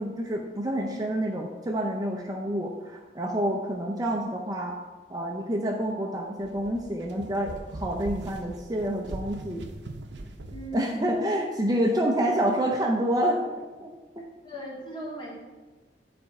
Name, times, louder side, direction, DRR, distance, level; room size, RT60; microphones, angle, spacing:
voice 1, 0.0-4.8 5.1-9.6 10.7-14.3, right 1 dB, 20° right, 1 dB, 0.6 m, -28 dB
sound 1, 6.4-10.8, right 2 dB, 80° right, 0.8 m, -40 dB
voice 2, 10.5-11.1 14.4-15.3, right 1 dB, 25° left, -4 dB, 1.9 m, -38 dB
9.6 x 4.3 x 4.8 m, 1.3 s
head